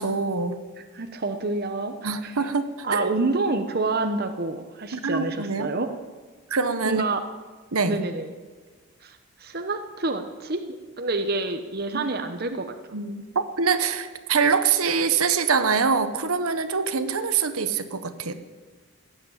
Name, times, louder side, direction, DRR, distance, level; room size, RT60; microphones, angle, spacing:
voice 1, 0.0-0.6 2.0-3.1 4.9-5.7 6.5-7.0 7.7-8.0 11.9-12.1 12.9-13.2 13.6-18.3, right 5 dB, 80° right, 9 dB, 1.2 m, -24 dB
voice 2, 0.8-2.4 2.8-5.9 6.8-7.2 7.9-8.3 9.0-10.6 11.0-12.7, right 3 dB, 45° right, 7 dB, 1.0 m, -28 dB
17.0 x 8.9 x 8.9 m, 1.4 s
head